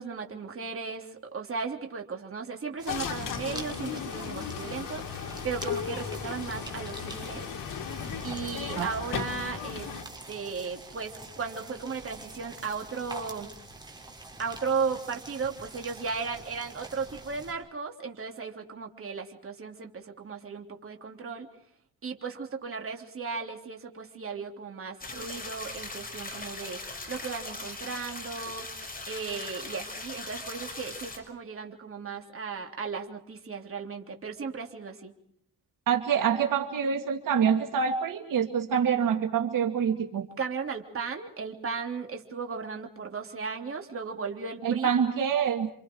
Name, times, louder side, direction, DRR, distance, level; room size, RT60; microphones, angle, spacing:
voice 1, 0.0-7.5 8.2-9.9 10.3-13.5 14.4-21.5 22.0-26.8 27.1-28.6 29.1-35.1 40.4-45.1, right 5 dB, 40° right, 3 dB, 3.4 m, -36 dB
sound 1, 2.8-17.5, right 2 dB, 15° right, 5.9 m, -46 dB
sound 2, 2.9-10.0, left 7 dB, 85° left, 2.8 m, -36 dB
sound 3, 25.0-31.2, left 2 dB, 25° left, 6.2 m, -40 dB
voice 2, 35.9-40.3 44.6-45.7, right 7 dB, 80° right, 5 dB, 2.3 m, -26 dB
30.0 x 27.0 x 4.7 m, 0.64 s
cardioid pair, 120°, 32 cm